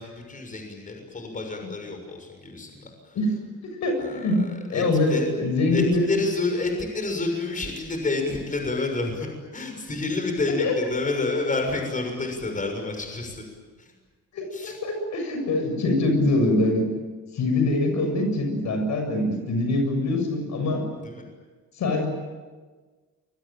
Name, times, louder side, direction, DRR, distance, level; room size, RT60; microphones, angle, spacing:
voice 1, 0.0-3.2 4.0-5.3 5.7-13.4 13.8-13.9 14.5-14.8 21.0-21.2, left 3 dB, 25° left, 3 dB, 6.7 m, -29 dB
voice 2, 3.6-4.4 4.7-6.1 10.6-10.7 14.3-16.8 17.3-20.9 21.8-22.1, left 2 dB, 65° left, 5 dB, 7.0 m, -24 dB
28.0 x 23.0 x 8.9 m, 1.4 s
cardioid pair, 130°, 31 cm